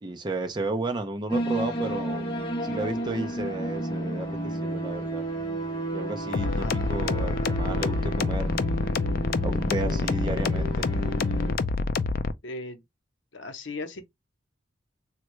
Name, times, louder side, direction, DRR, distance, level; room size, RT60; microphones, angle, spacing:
voice 1, 0.0-2.3 2.6-5.2 5.9-8.5 9.4-10.9, right 2 dB, 25° right, 0.5 m, -33 dB
sound 1, 1.3-11.5, right 1 dB, 25° left, 0.8 m, -32 dB
sound 2, 6.3-12.3, left 4 dB, 50° left, 0.3 m, -27 dB
voice 2, 6.4-6.9 12.4-12.8 13.3-14.0, left 2 dB, 80° left, 0.7 m, -37 dB
3.5 x 2.2 x 3.0 m
head